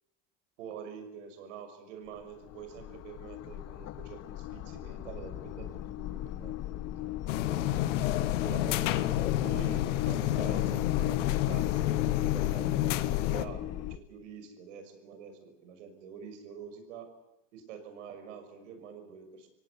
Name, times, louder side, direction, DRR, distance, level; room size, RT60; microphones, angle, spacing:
voice 1, 0.6-7.4 8.4-8.9 9.2-17.1 17.5-19.5, right 7 dB, 80° right, 8 dB, 6.0 m, -46 dB
sound 1, 2.1-14.0, left 14 dB, 45° left, 1.2 m, -37 dB
sound 2, 7.3-13.4, left 13 dB, 80° left, 1.5 m, -29 dB
25.0 x 17.5 x 8.3 m, 0.96 s
supercardioid pair, 100°, 36 cm